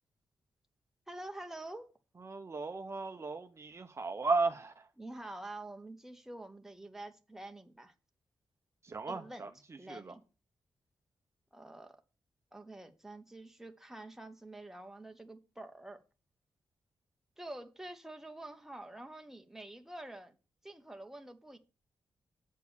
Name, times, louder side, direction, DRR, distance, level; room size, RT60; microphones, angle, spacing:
voice 1, 1.1-1.9 5.0-7.9 9.1-9.5 9.8-10.2 11.5-12.0 12.5-16.0 17.4-20.3 20.6-21.6, right 1 dB, 5° right, 1.0 m, -47 dB
voice 2, 2.2-4.9 8.8-9.5 9.9-10.1, right 3 dB, 30° right, 0.7 m, -35 dB
8.3 x 4.6 x 7.0 m
wide cardioid pair, 115°, 9 cm